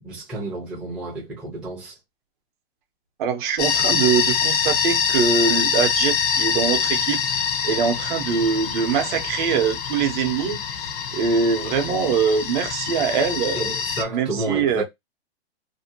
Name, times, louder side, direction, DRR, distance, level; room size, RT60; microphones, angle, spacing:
voice 1, 0.0-2.0 3.9-4.0 13.5-14.8, right 2 dB, 5° right, 0.5 m, -31 dB
voice 2, 3.2-10.6 11.1-13.6 14.1-14.8, right 6 dB, 50° right, 0.7 m, -23 dB
sound 1, 3.6-14.0, left 6 dB, 55° left, 0.6 m, -24 dB
2.7 x 2.1 x 2.6 m
hypercardioid pair, 150°, 32 cm